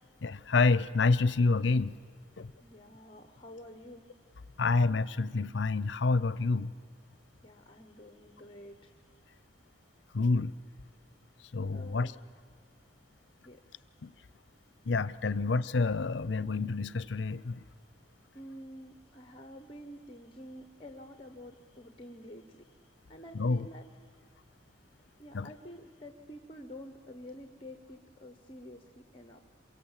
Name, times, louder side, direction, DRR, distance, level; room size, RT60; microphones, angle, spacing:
voice 1, 0.2-2.0 2.4-2.5 4.6-6.7 10.1-10.5 11.5-12.1 14.0-14.1 14.9-17.6 23.3-23.7 25.3-25.5, left 3 dB, 75° left, 17 dB, 0.6 m, -28 dB
voice 2, 2.6-4.0 7.4-8.9 11.7-12.1 13.4-13.8 18.3-22.6 23.1-23.8 25.2-29.4, equal, 30° left, 6 dB, 1.1 m, -49 dB
28.0 x 23.5 x 7.4 m, 2.1 s
head